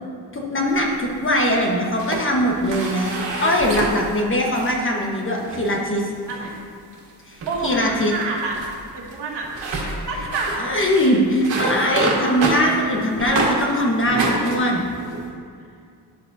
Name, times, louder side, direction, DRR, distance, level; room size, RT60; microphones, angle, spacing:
voice 1, 0.3-3.1 3.4-6.1 7.3-8.1 10.6-14.8, equal, 30° left, -1 dB, 1.2 m, -21 dB
sound 1, 0.7-1.5 1.8-4.8 5.3-5.7 6.3-6.6 6.9-7.1 7.4-13.6 14.0-15.3, right 2 dB, 85° right, 1.7 m, -28 dB
voice 2, 7.5-8.6 8.9-10.6, right 3 dB, 70° right, -2 dB, 1.7 m, -28 dB
10.5 x 7.4 x 2.7 m, 2.3 s
cardioid pair, 115°, 42 cm